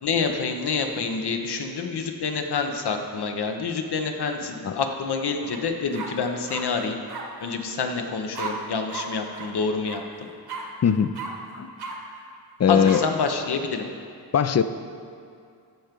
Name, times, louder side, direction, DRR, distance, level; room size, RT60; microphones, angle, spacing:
voice 1, 0.0-7.0 7.4-10.0 12.7-13.9, left 5 dB, 70° left, 5 dB, 1.0 m, -27 dB
sound 1, 5.4-5.6 5.9-6.6 7.1-7.2 8.3-8.5 8.9-9.1 9.3-9.5 9.8-10.0 10.5-10.6 11.1-11.3 11.8-11.9 12.8-13.0, right 5 dB, 65° right, 1.4 m, -34 dB
voice 2, 10.8-11.1 11.5-11.7 12.6-13.0 14.3-14.6, left 7 dB, 40° left, 11 dB, 0.5 m, -20 dB
13.5 x 4.6 x 5.2 m, 2.4 s
cardioid pair, 65°, 40 cm